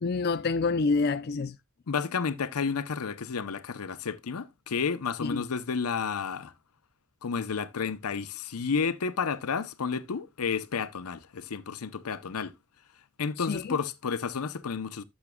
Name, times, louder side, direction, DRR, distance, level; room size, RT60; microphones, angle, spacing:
voice 1, 0.0-1.6 5.2-5.4 13.4-13.8, left 4 dB, 45° left, 0.4 m, -27 dB
voice 2, 1.9-6.5 7.2-12.5 13.2-15.0, left 5 dB, 85° left, 0.7 m, -31 dB
12.0 x 7.2 x 2.2 m
head